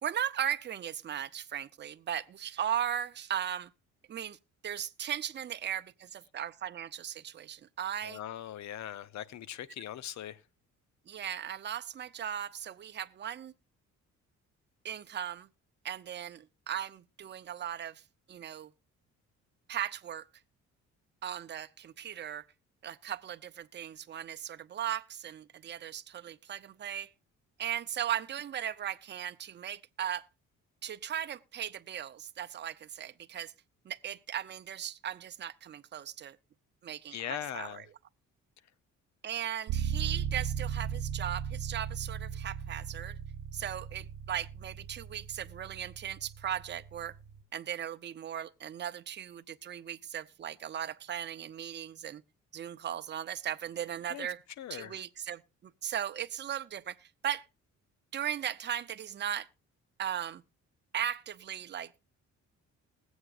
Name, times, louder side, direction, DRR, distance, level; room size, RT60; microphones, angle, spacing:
voice 1, 0.0-3.7 4.1-4.4 4.6-8.2 11.1-13.5 14.8-15.5 15.8-18.0 18.3-18.7 19.7-20.3 21.2-22.5 22.8-27.1 27.6-30.3 30.8-33.5 33.8-36.4 36.8-37.8 39.2-43.2 43.5-47.2 47.5-52.2 52.5-54.4 54.7-57.5 58.1-59.5 60.0-60.4 60.9-62.0, right 10 dB, 35° right, 0.5 m, -37 dB
voice 2, 8.0-10.4 37.1-37.8 54.1-54.3 54.6-54.9, left 11 dB, 65° left, 0.7 m, -40 dB
sound 1, 39.7-47.4, right 8 dB, 80° right, 0.8 m, -37 dB
20.5 x 8.0 x 2.4 m
cardioid pair, 90°, 30 cm